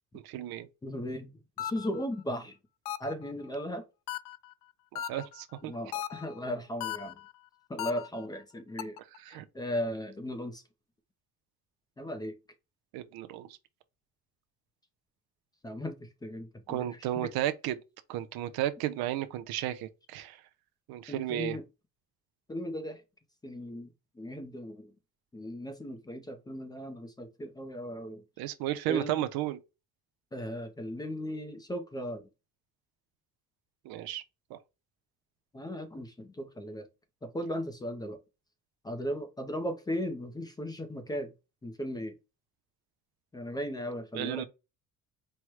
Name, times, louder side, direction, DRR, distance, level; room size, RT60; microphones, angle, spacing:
voice 1, 0.1-0.7 4.9-5.7 9.2-9.4 12.9-13.6 16.7-17.8 18.1-20.4 20.9-21.6 28.4-29.6 33.8-34.2 34.5-34.6 44.1-44.4, right 13 dB, 85° right, 0.7 m, -33 dB
voice 2, 0.8-1.3 1.6-2.6 3.0-3.8 5.6-7.2 7.7-9.0 9.3-10.6 12.0-12.3 15.6-17.3 21.1-21.6 22.5-23.0 23.4-23.9 24.2-24.9 25.3-28.2 28.9-29.3 30.3-32.3 35.5-36.8 37.2-38.2 38.8-41.3 41.6-42.1 43.3-44.4, equal, 10° left, 0.4 m, -37 dB
sound 1, 1.6-2.1 2.9-3.3 4.1-4.5 5.0-5.4 5.9-6.4 6.8-7.3 7.8-8.3 8.8-9.2, left 12 dB, 65° left, 0.5 m, -37 dB
4.5 x 2.1 x 4.6 m
cardioid pair, 165°, 36 cm